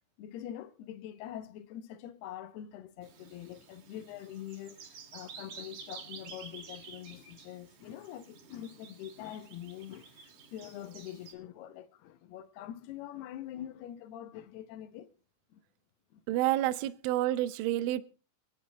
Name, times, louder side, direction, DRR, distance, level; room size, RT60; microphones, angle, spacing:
voice 1, 0.2-15.1 15.5-15.6 16.1-16.2 17.4-17.5, left 11 dB, 75° left, 2.6 m, -44 dB
Bird vocalization bird call bird song, 3.0-11.3, right 5 dB, 60° right, 4.1 m, -51 dB
voice 2, 16.3-18.1, right 14 dB, 80° right, 3.2 m, -29 dB
25.5 x 9.2 x 3.4 m
omnidirectional pair, 5.6 m